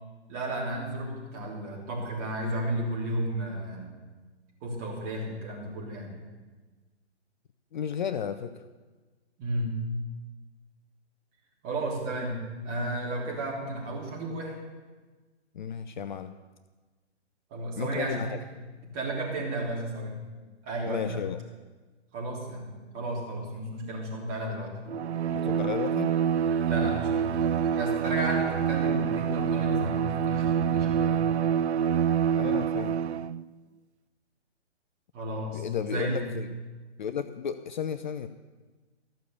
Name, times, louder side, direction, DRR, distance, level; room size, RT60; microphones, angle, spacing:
voice 1, 0.3-3.9 4.6-6.2 9.4-9.8 11.6-14.6 17.5-18.3 18.8-20.2 20.6-21.2 22.1-24.8 26.7-31.2 35.1-36.2, right 1 dB, 25° right, -3 dB, 3.4 m, -33 dB
voice 2, 7.7-8.6 15.5-16.4 17.8-18.4 20.9-21.4 25.3-26.2 32.4-33.0 35.5-36.6 37.0-38.3, left 8 dB, 40° left, 10 dB, 0.6 m, -33 dB
Bowed string instrument, 24.9-33.4, right 8 dB, 70° right, 0.5 m, -26 dB
14.5 x 6.5 x 7.0 m, 1.3 s
figure-of-eight pair, 135°, 35 cm